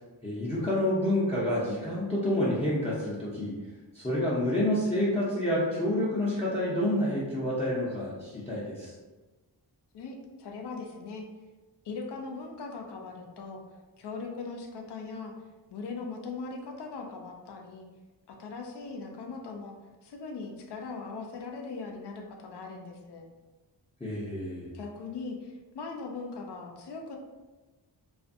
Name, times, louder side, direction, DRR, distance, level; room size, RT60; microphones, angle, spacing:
voice 1, 0.2-3.5 3.9-8.9 24.0-24.7, left 1 dB, 15° left, -8 dB, 0.5 m, -28 dB
voice 2, 9.9-11.3 11.8-13.6 14.0-15.3 15.7-17.9 18.3-19.8 20.0-23.3 24.7-27.2, left 4 dB, 60° left, 2 dB, 0.5 m, -40 dB
2.4 x 2.4 x 2.5 m, 1.2 s
wide cardioid pair, 80°, 46 cm